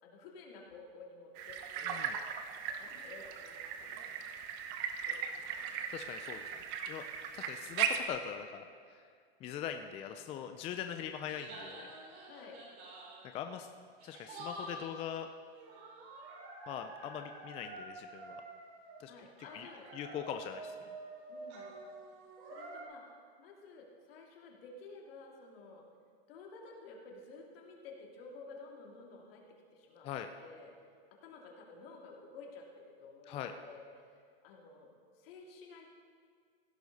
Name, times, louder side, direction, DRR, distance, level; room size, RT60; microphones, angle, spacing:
voice 1, 0.0-2.0 2.8-4.3 5.1-5.8 12.3-12.6 19.1-20.1 21.3-21.9 22.5-23.1 23.4-25.8 26.3-29.4 29.7-30.7 31.2-33.9 34.4-34.9 35.2-35.9, left 3 dB, 65° left, 0 dB, 2.8 m, -52 dB
sound 1, 1.4-8.0, right 8 dB, 40° right, 0.9 m, -38 dB
voice 2, 5.9-6.4 6.9-7.0 7.3-8.7 8.9-9.0 9.4-11.9 13.3-13.7 14.0-15.3 16.7-18.4 19.0-19.1 19.5-20.7 30.0-30.3 33.3-33.5, left 9 dB, 20° left, 6 dB, 0.4 m, -41 dB
sound 2, 11.1-13.3 14.0-15.0 15.5-19.0 19.4-22.8, right 2 dB, 80° right, 4.1 m, -48 dB
16.0 x 11.5 x 4.1 m, 2.1 s
supercardioid pair, 145°, 32 cm